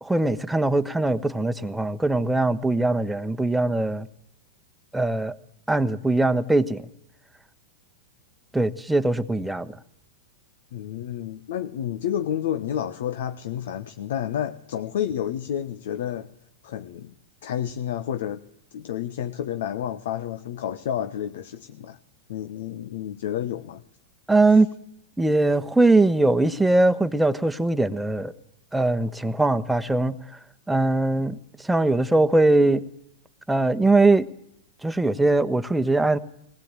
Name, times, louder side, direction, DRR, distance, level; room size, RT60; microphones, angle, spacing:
voice 1, 0.0-4.1 4.9-5.3 5.7-6.8 8.5-9.8 24.3-24.7 25.2-28.3 28.7-30.2 30.7-32.8 33.5-34.3 34.8-36.2, right 2 dB, 5° right, 1.2 m, -21 dB
voice 2, 10.7-16.3 16.6-17.1 17.4-18.4 18.7-22.0 22.3-23.8 24.5-24.6, left 10 dB, 65° left, 1.2 m, -30 dB
20.0 x 19.5 x 9.0 m
hypercardioid pair, 100°, 0 cm